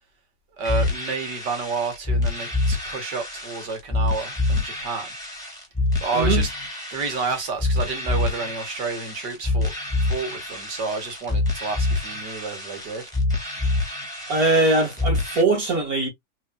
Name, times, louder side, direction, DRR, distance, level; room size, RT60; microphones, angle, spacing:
sound 1, 0.6-15.4, left 2 dB, ahead, 2.4 m, -26 dB
voice 1, 0.6-5.1 6.0-6.5 6.9-9.7 10.0-13.0, right 4 dB, 80° right, 2.2 m, -30 dB
voice 2, 14.3-16.1, right 2 dB, 55° right, 2.7 m, -21 dB
4.8 x 3.7 x 2.5 m
omnidirectional pair, 1.8 m